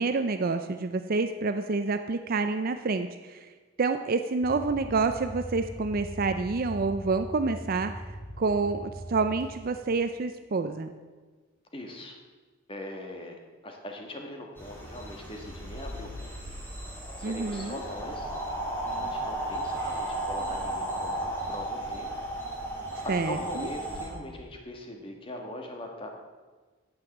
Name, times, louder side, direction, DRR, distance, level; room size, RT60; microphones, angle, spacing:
voice 1, 0.0-3.5 3.8-7.9 8.4-10.9 17.2-17.8 23.1-23.7, right 4 dB, 45° right, 8 dB, 0.5 m, -28 dB
sound 1, 4.4-10.0, equal, 45° left, 2.7 m, -41 dB
voice 2, 11.7-12.2 12.7-16.4 17.2-18.3 19.0-22.1 23.0-26.1, left 1 dB, 25° left, 2 dB, 1.6 m, -41 dB
sound 2, 14.6-24.1, right 1 dB, 10° left, 3.0 m, -35 dB
9.6 x 7.9 x 7.2 m, 1.4 s
head